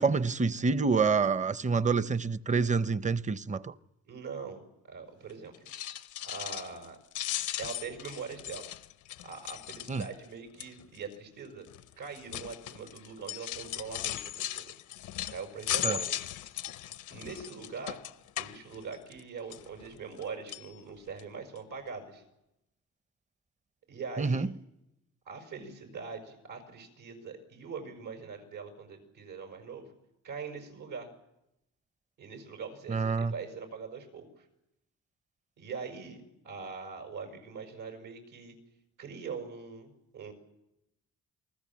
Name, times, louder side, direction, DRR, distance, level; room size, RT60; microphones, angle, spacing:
voice 1, 0.0-3.7 9.9-10.0 15.8-16.0 24.2-24.5 32.9-33.3, right 4 dB, 25° right, 0.8 m, -27 dB
voice 2, 4.1-5.5 6.2-7.0 7.6-8.7 9.2-11.7 12.0-14.7 15.3-16.3 17.1-18.0 18.4-22.2 23.9-24.5 25.3-29.9 30.2-31.1 32.2-34.5 35.6-38.5 39.0-40.3, right 5 dB, 80° right, 6.0 m, -42 dB
sound 1, 5.5-6.9 7.1-10.3 10.6-11.0 11.7-19.2 19.5-20.2 20.5-20.7 21.2-21.3 21.6-21.7, left 13 dB, 80° left, 0.8 m, -37 dB
28.0 x 20.0 x 7.5 m
cardioid pair, 90°, 30 cm